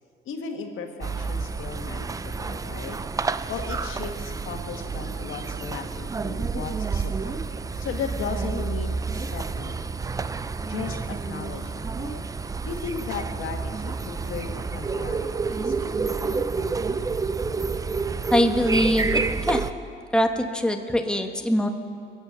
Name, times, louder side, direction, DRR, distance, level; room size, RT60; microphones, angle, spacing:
voice 1, 0.3-3.0 3.5-7.4 7.8-9.9 10.7-11.0 11.3-12.2 12.7-16.9, left 6 dB, 75° left, 3 dB, 1.8 m, -36 dB
sound 1, 1.0-19.7, right 4 dB, 15° right, 0.4 m, -29 dB
voice 2, 18.3-19.7 20.1-21.7, left 1 dB, 5° left, 5 dB, 1.1 m, -23 dB
22.0 x 8.2 x 7.2 m, 2.3 s
cardioid pair, 115°, 21 cm